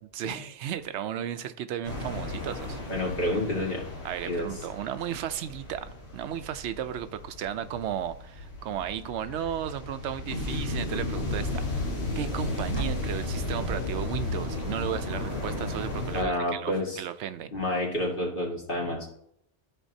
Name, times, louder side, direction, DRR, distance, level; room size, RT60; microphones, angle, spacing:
voice 1, 0.1-2.8 4.0-11.6 12.1-17.5, right 10 dB, 90° right, 0.9 m, -34 dB
sound 1, 1.8-16.2, left 2 dB, 70° left, 1.6 m, -34 dB
voice 2, 2.9-3.8 4.3-4.5 16.1-17.0 17.5-19.1, left 1 dB, 55° left, 2.1 m, -29 dB
sound 2, 8.6-9.7 10.2-10.9 11.8-12.3 12.6-13.6, right 1 dB, 25° left, 1.0 m, -44 dB
13.5 x 4.5 x 2.7 m
omnidirectional pair, 1.1 m